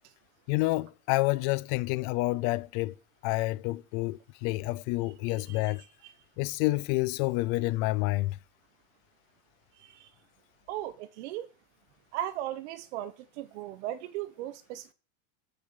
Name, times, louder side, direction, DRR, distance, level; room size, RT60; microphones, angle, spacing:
voice 1, 0.5-2.9 3.2-5.8 6.4-8.4, left 20 dB, 50° left, 0.5 m, -28 dB
voice 2, 10.7-11.5 12.1-14.9, right 13 dB, 70° right, 1.3 m, -37 dB
7.2 x 6.7 x 6.8 m
supercardioid pair, 150°, 36 cm